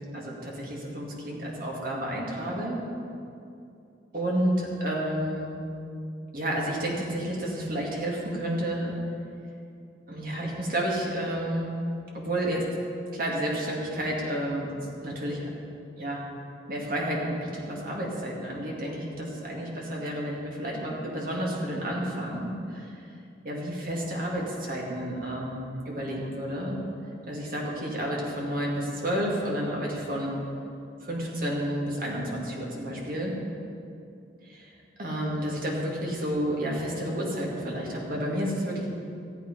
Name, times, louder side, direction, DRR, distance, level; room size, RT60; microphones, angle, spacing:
voice 1, 0.1-2.8 4.1-5.6 6.3-9.0 10.1-11.7 12.1-12.6 13.1-15.4 16.0-16.2 16.7-22.9 23.4-26.8 27.3-30.3 31.0-33.3 34.4-34.7 35.0-38.9, right 1 dB, 50° right, -3 dB, 2.3 m, -30 dB
15.0 x 8.1 x 5.4 m, 2.6 s
head